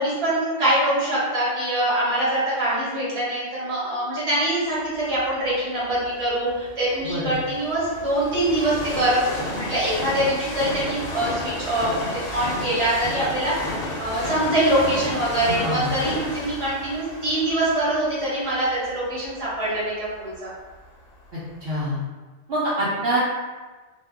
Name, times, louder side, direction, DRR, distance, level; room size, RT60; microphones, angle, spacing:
voice 1, 0.0-9.2 9.5-20.5, right 1 dB, 25° right, -9 dB, 1.1 m, -24 dB
Train, 5.1-21.1 21.7-21.8, left 1 dB, 60° left, 0.7 m, -33 dB
voice 2, 15.5-15.9 21.6-22.0 22.5-23.2, right 1 dB, 60° right, -9 dB, 0.8 m, -25 dB
2.5 x 2.1 x 3.4 m, 1.3 s
omnidirectional pair, 1.2 m